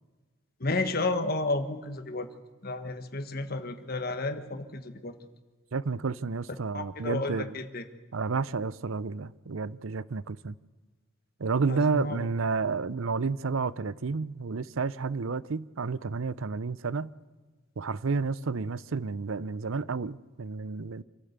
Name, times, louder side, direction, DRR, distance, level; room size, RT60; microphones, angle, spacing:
voice 1, 0.6-2.3 2.6-5.1 6.7-7.8 11.7-12.3, left 2 dB, 45° left, 1.5 m, -32 dB
voice 2, 5.7-7.6 8.1-10.6 11.4-17.1 17.8-21.0, right 4 dB, 75° right, 0.6 m, -31 dB
26.0 x 13.5 x 8.2 m
head